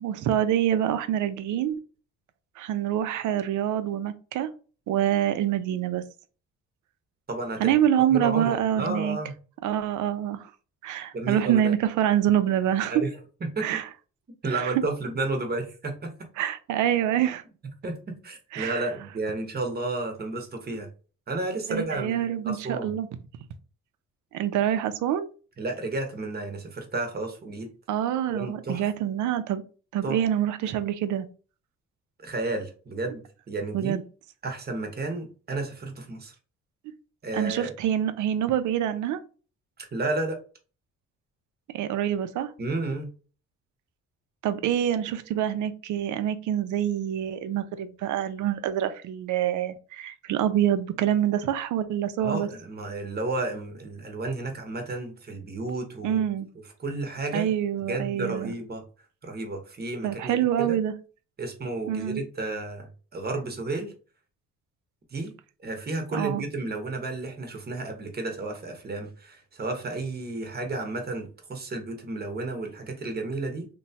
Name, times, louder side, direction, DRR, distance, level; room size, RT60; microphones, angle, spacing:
voice 1, 0.0-1.8 2.6-4.5 4.9-6.0 7.6-9.2 9.6-10.5 10.8-12.9 13.6-13.8 14.5-14.7 16.4-17.4 18.5-18.9 21.7-23.1 24.3-25.3 27.9-29.6 29.9-31.3 33.7-34.0 37.3-39.2 41.7-42.5 44.4-52.5 56.0-56.5 57.3-58.5 60.0-60.9 61.9-62.2 66.1-66.4, right 10 dB, 75° right, 11 dB, 0.5 m, -26 dB
voice 2, 7.3-7.7 8.1-9.3 11.1-11.7 12.9-13.1 13.4-13.8 14.4-16.3 17.8-18.0 18.2-20.9 21.3-22.9 25.6-27.7 28.3-28.8 30.0-30.2 32.2-33.2 33.5-34.0 34.4-36.3 37.2-37.7 39.8-40.4 42.6-43.1 52.2-56.2 56.8-57.5 57.9-58.8 59.2-60.8 61.4-63.9 65.1-65.3 65.6-73.7, right 2 dB, 30° right, 4 dB, 0.9 m, -32 dB
2.9 x 2.2 x 2.7 m, 0.36 s
cardioid pair, 90°, 30 cm